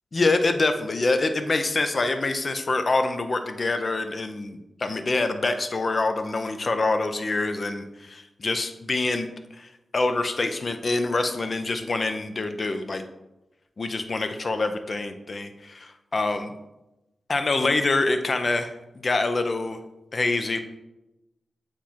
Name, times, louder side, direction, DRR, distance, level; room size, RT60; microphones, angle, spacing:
voice 1, 0.1-9.3 9.6-13.0 13.8-16.5 17.3-19.8 20.1-20.6, left 3 dB, 45° left, 8 dB, 0.6 m, -25 dB
8.0 x 3.1 x 4.2 m, 0.97 s
cardioid pair, 70°, 0 cm